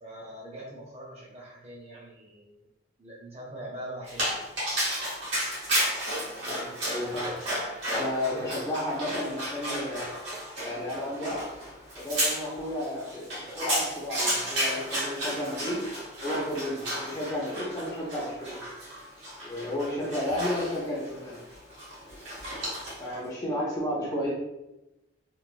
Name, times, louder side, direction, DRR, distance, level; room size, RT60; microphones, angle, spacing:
voice 1, 0.0-2.7 3.0-4.4 8.3-8.5, right 1 dB, 30° right, -3 dB, 0.7 m, -42 dB
Dog, 4.1-23.1, equal, 65° right, 1.5 m, -33 dB
voice 2, 6.4-7.3 7.9-10.0 10.6-11.4 12.0-15.8 16.2-18.6 19.4-21.4 23.0-24.3, left 1 dB, 20° left, -6 dB, 0.5 m, -32 dB
3.1 x 2.5 x 2.5 m, 0.95 s
head